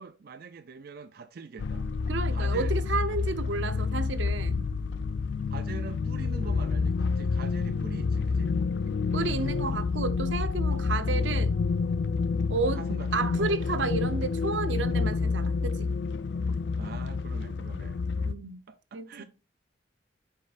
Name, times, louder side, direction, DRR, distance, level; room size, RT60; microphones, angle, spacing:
voice 1, 0.0-1.9 2.3-2.7 5.5-8.5 12.7-13.5 16.8-18.3 18.7-19.2, right 5 dB, 55° right, 0.4 m, -43 dB
sound 1, 1.6-18.3, left 4 dB, 70° left, 0.4 m, -28 dB
voice 2, 2.1-4.7 9.1-11.6 12.5-12.8 13.1-15.9 18.3-18.6 18.9-19.2, right 3 dB, 85° right, 0.8 m, -31 dB
9.4 x 5.2 x 2.5 m
head